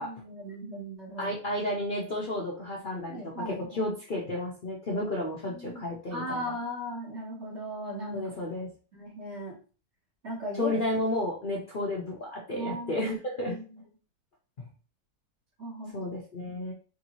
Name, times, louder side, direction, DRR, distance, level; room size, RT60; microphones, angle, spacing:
voice 1, 0.0-1.4 3.1-3.8 4.9-5.2 5.5-5.8 6.1-8.3 8.9-9.5 10.2-10.7 12.5-13.2 13.5-13.6 15.6-16.0 16.5-16.6, equal, 40° right, -4 dB, 1.8 m, -37 dB
voice 2, 1.2-6.5 8.1-8.7 10.6-13.6 14.6-14.7 15.9-16.7, left 1 dB, 90° left, -3 dB, 0.4 m, -32 dB
4.6 x 2.7 x 3.0 m, 0.36 s
omnidirectional pair, 2.0 m